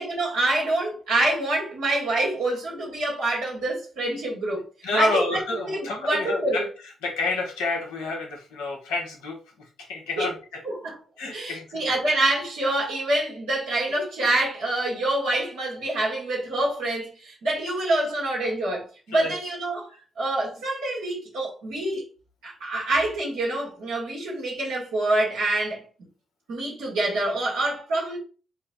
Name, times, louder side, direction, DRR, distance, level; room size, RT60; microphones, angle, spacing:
voice 1, 0.0-4.6 4.9-6.6 10.2-10.3 10.6-11.0 11.3-19.9 20.2-22.0 22.4-25.8 26.5-28.2, right 2 dB, 85° right, 1.8 m, -26 dB
voice 2, 4.8-6.7 7.0-10.6 11.2-12.0 19.1-19.4, left 3 dB, 85° left, 1.1 m, -29 dB
4.2 x 2.2 x 4.0 m
hypercardioid pair, 45°, 0 cm